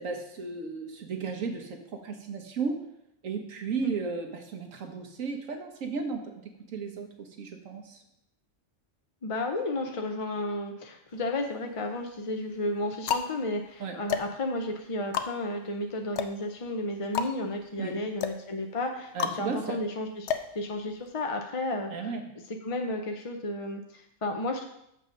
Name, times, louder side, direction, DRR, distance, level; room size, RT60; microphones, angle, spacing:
voice 1, 0.0-2.8 3.2-6.3 6.7-8.0 13.8-14.0 17.8-18.0 19.1-19.8 21.9-22.4, right 5 dB, 90° right, 4 dB, 1.4 m, -34 dB
voice 2, 9.2-20.3 20.5-22.1 22.6-24.6, left 2 dB, 40° left, 3 dB, 0.5 m, -33 dB
sound 1, 11.1-11.8 12.5-21.3, left 7 dB, 65° left, 0.9 m, -34 dB
6.7 x 5.4 x 5.2 m, 0.78 s
omnidirectional pair, 1.3 m